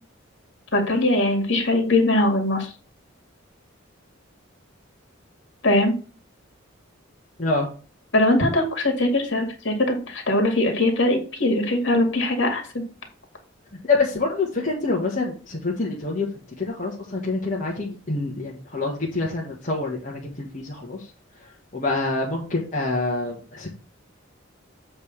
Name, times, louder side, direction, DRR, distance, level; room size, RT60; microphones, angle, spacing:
voice 1, 0.7-2.7 5.6-5.9 8.1-12.8, left 1 dB, 60° left, 3 dB, 2.3 m, -21 dB
voice 2, 13.9-16.3 16.6-21.0 21.7-23.7, left 3 dB, 40° left, -3 dB, 1.4 m, -26 dB
8.0 x 3.4 x 6.1 m, 0.38 s
head